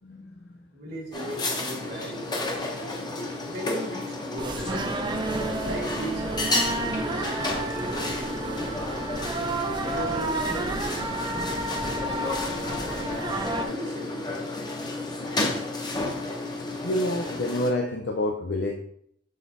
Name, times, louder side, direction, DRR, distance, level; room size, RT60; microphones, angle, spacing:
voice 1, 0.0-0.6 1.9-2.1 7.1-7.2 12.7-12.8 16.8-18.7, left 1 dB, 70° left, 3 dB, 0.5 m, -29 dB
voice 2, 0.7-2.7 3.3-5.1 5.6-9.0 9.8-12.3 13.5-14.5, right 1 dB, 60° right, -1 dB, 1.4 m, -38 dB
sound 1, 1.1-17.7, left 2 dB, 25° left, 0.8 m, -32 dB
sound 2, 4.4-13.7, right 2 dB, 25° right, 0.6 m, -31 dB
6.4 x 4.0 x 3.8 m, 0.68 s
head